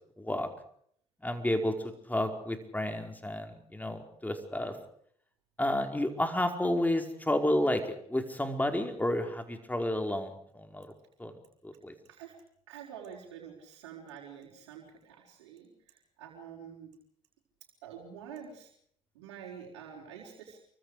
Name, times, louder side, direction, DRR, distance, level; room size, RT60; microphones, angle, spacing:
voice 1, 0.2-0.5 1.2-1.7 2.1-4.8 5.6-10.9 11.2-11.4 11.6-11.9, left 1 dB, 10° left, 5 dB, 5.0 m, -31 dB
voice 2, 12.7-16.9 17.8-18.7 19.1-20.6, right 8 dB, 85° right, -3 dB, 5.1 m, -47 dB
29.0 x 24.0 x 5.1 m, 0.65 s
hypercardioid pair, 50°, 14 cm